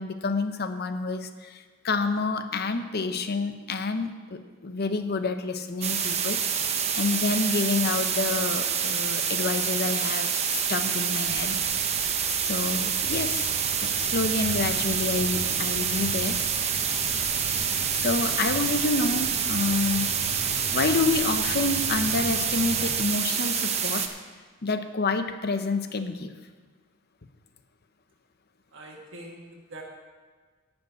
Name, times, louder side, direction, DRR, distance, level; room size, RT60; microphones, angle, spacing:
voice 1, 0.0-6.4 6.9-11.6 12.3-13.5 13.8-16.4 17.9-20.1 20.5-24.1 24.6-26.3, left 3 dB, 50° left, 9 dB, 0.7 m, -28 dB
sound 1, 5.8-24.1, right 7 dB, 30° right, 0.7 m, -27 dB
sound 2, 11.3-18.1, right 2 dB, 90° right, 0.9 m, -47 dB
sound 3, 13.0-23.0, right 2 dB, 10° left, 2.9 m, -40 dB
voice 2, 28.7-29.8, right 1 dB, 60° right, -2 dB, 1.4 m, -44 dB
11.0 x 5.3 x 8.1 m, 1.5 s
head